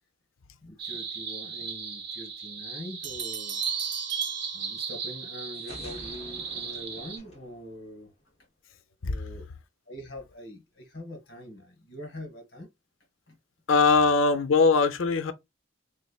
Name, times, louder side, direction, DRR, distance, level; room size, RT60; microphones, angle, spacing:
voice 1, 0.6-3.6 4.5-8.1 9.0-9.5 9.9-12.7 13.3-13.4, equal, 55° left, 1.3 m, -43 dB
sound 1, 0.8-7.2, right 6 dB, 55° right, 0.9 m, -35 dB
sound 2, 3.0-5.3, right 9 dB, 40° right, 0.3 m, -41 dB
sound 3, 5.5-8.4, left 1 dB, 30° left, 1.2 m, -48 dB
voice 2, 13.7-15.3, left 4 dB, 85° left, 0.5 m, -21 dB
3.5 x 3.2 x 2.3 m
head